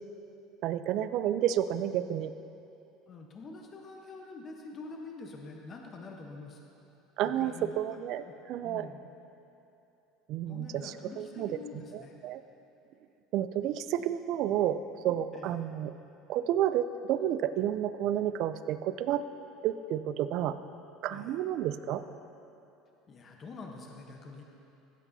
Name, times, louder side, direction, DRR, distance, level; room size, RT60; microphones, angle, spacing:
voice 1, 0.6-2.3 7.2-8.9 10.3-12.4 13.3-14.8 15.0-15.9 16.3-19.2 19.6-20.6 21.0-22.0, right 11 dB, 60° right, 13 dB, 0.4 m, -31 dB
voice 2, 3.1-6.6 7.2-7.8 8.3-8.4 8.6-9.0 10.4-12.2 15.3-15.6 21.1-21.4 23.1-24.4, left 3 dB, 35° left, 1 dB, 1.0 m, -46 dB
15.5 x 8.2 x 2.7 m, 2.9 s
supercardioid pair, 105°, 0 cm